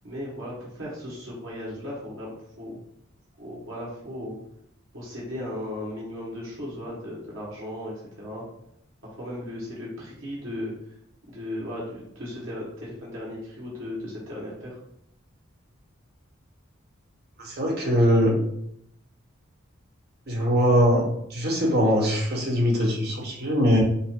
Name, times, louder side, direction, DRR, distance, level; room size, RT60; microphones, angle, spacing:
voice 1, 0.0-2.8 3.4-4.3 4.9-8.4 9.1-10.9 11.3-14.8, left 1 dB, 75° right, -6 dB, 1.4 m, -36 dB
voice 2, 17.4-18.3 20.3-21.0 21.3-23.8, equal, 55° right, -1 dB, 1.1 m, -21 dB
5.5 x 2.0 x 3.7 m, 0.75 s
head